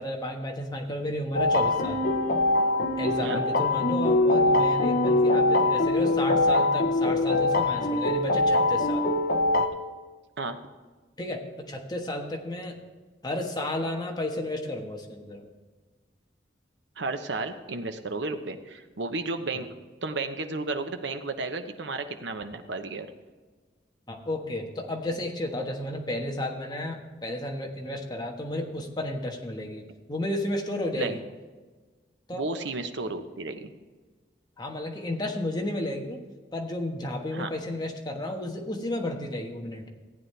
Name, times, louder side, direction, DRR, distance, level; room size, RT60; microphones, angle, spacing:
voice 1, 0.0-2.0 3.0-9.0 11.2-12.8 13.2-15.5 19.5-19.6 24.1-31.2 32.3-32.5 34.6-36.2 36.5-39.9, left 1 dB, 25° left, 1 dB, 1.3 m, -32 dB
sound 1, 1.3-9.7, left 2 dB, 55° left, 0.9 m, -23 dB
voice 2, 17.0-19.7 20.0-23.1 31.0-31.2 32.3-33.7 37.3-37.5, right 3 dB, 75° right, 8 dB, 0.9 m, -33 dB
15.0 x 9.2 x 3.3 m, 1.4 s
head